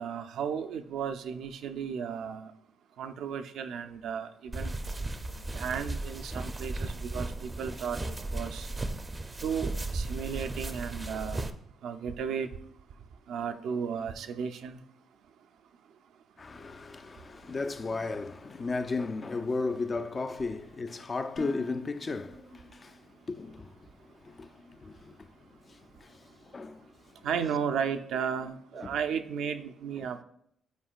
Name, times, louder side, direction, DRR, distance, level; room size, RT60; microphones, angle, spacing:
voice 1, 0.0-2.5 3.0-4.7 5.5-8.0 8.3-8.7 9.4-11.5 11.8-12.5 13.3-14.8 27.2-30.2, right 7 dB, 75° right, 0.5 m, -34 dB
sound 1, 4.5-11.5, right 2 dB, 20° right, 0.5 m, -35 dB
voice 2, 16.4-23.0 23.3-23.9 24.2-25.2 25.7-26.9 28.8-28.9 30.0-30.1, left 3 dB, 35° left, 0.4 m, -35 dB
Dishes pots and pans, 21.4-23.4, right 1 dB, 70° left, 2.4 m, -46 dB
10.0 x 4.4 x 2.4 m
cardioid pair, 90°, 0 cm